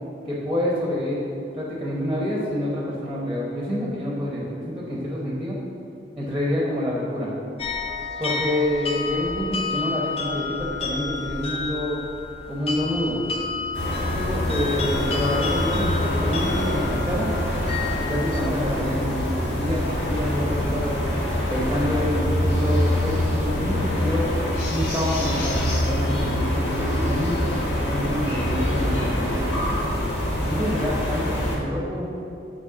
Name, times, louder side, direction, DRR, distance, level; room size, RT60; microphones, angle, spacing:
voice 1, 0.2-1.2 1.6-5.6 6.2-7.3 8.2-12.0 12.5-13.2 14.2-17.3 18.0-21.0 21.5-24.4 24.7-27.5 27.8-29.6 30.5-32.1, left 1 dB, 5° right, -5 dB, 1.0 m, -27 dB
sound 1, 7.6-18.5, left 4 dB, 35° left, 0.6 m, -31 dB
sound 2, 13.7-31.6, left 1 dB, 80° left, 1.5 m, -25 dB
9.2 x 3.2 x 6.0 m, 2.6 s
head